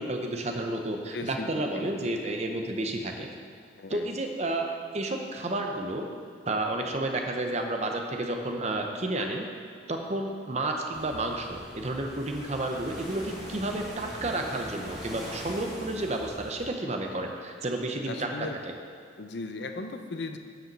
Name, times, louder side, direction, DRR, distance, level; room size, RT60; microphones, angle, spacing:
voice 1, 0.0-3.3 3.9-4.7 4.9-6.1 6.5-9.5 9.9-18.7, right 2 dB, 35° right, 3 dB, 0.8 m, -31 dB
voice 2, 1.1-2.2 3.8-4.1 18.1-18.6 19.2-20.4, left 3 dB, 60° left, 7 dB, 0.6 m, -37 dB
sound 1, 10.9-16.7, right 1 dB, 5° right, 2.0 m, -42 dB
9.2 x 5.1 x 6.7 m, 2.2 s
head